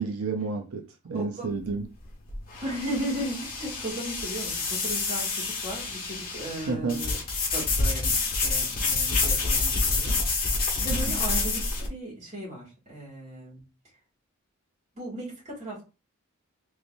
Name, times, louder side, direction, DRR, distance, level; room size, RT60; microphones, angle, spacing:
voice 1, 0.0-1.9 6.7-7.1 10.9-11.0, right 4 dB, 85° right, 0.6 m, -30 dB
voice 2, 1.1-1.6 2.6-7.2 7.5-10.2 10.8-13.6 15.0-15.8, right 1 dB, 30° right, 2.1 m, -36 dB
sound 1, 1.5-11.9, left 3 dB, 40° left, 1.3 m, -28 dB
4.0 x 3.2 x 2.6 m
head